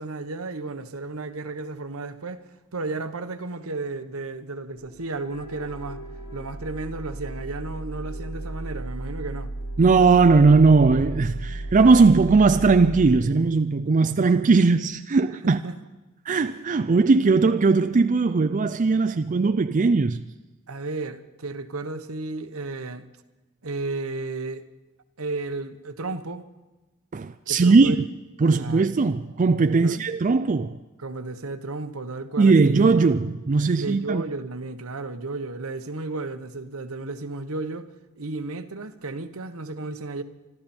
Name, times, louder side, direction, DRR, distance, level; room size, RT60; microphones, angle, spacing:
voice 1, 0.0-2.4 2.7-6.0 6.3-9.5 15.3-15.8 20.7-23.1 23.6-24.6 25.2-26.4 27.5-28.0 28.4-28.9 29.8-30.0 31.0-33.1 33.8-40.2, right 3 dB, 85° right, 1.2 m, -33 dB
sound 1, 4.8-13.2, right 2 dB, 75° left, 2.5 m, -34 dB
voice 2, 9.8-15.6 16.3-20.2 27.1-28.1 28.4-30.8 32.4-34.2, right 4 dB, 35° right, 0.4 m, -19 dB
25.5 x 13.0 x 4.4 m
head